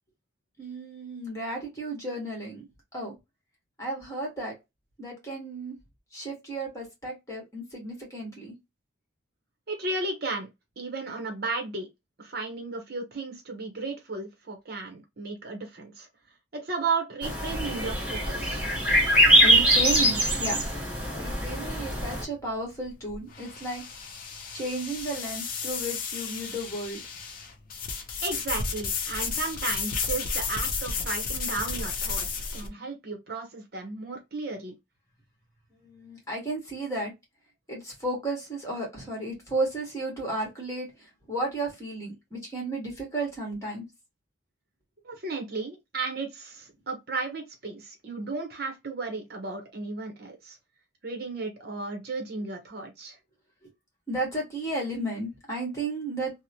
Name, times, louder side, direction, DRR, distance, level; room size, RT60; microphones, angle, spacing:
voice 1, 0.6-2.7 2.9-3.1 3.8-4.5 5.0-5.8 6.1-8.5 19.4-20.6 21.2-23.8 24.5-27.0 35.8-37.1 37.7-40.9 41.3-43.9 54.1-56.3, right 2 dB, 15° left, 1.2 m, -33 dB
voice 2, 9.7-10.5 10.8-11.9 12.2-16.1 16.6-18.6 28.2-34.8 45.0-50.6 51.0-53.2, right 3 dB, 50° right, 0.8 m, -34 dB
sound 1, 17.2-22.2, right 1 dB, 5° right, 1.1 m, -23 dB
sound 2, 22.3-32.7, left 5 dB, 45° left, 0.5 m, -33 dB
2.9 x 2.0 x 2.8 m
head